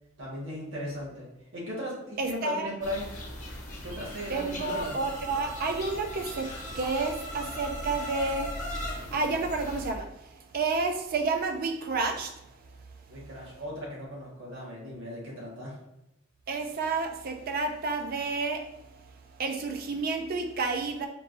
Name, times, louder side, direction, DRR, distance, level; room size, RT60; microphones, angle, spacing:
voice 1, 0.2-3.1 3.8-5.0 13.1-15.8, equal, 65° right, -5 dB, 1.5 m, -37 dB
voice 2, 2.2-2.7 4.3-6.5 6.8-8.5 9.1-10.1 10.5-12.3 16.5-18.6 19.4-21.1, right 3 dB, 45° right, 5 dB, 0.4 m, -30 dB
sound 1, 2.8-9.9, equal, 40° left, 1.0 m, -38 dB
4.5 x 3.0 x 2.5 m, 0.87 s
head